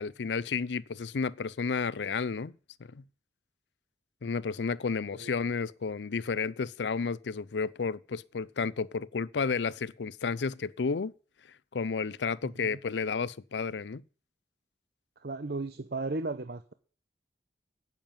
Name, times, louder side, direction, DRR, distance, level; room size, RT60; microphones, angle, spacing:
voice 1, 0.0-2.5 2.9-3.0 4.2-11.1 11.7-14.0, left 5 dB, 85° left, 0.5 m, -32 dB
voice 2, 12.4-12.8 15.2-16.7, right 3 dB, 60° right, 0.8 m, -35 dB
10.5 x 7.3 x 8.9 m
head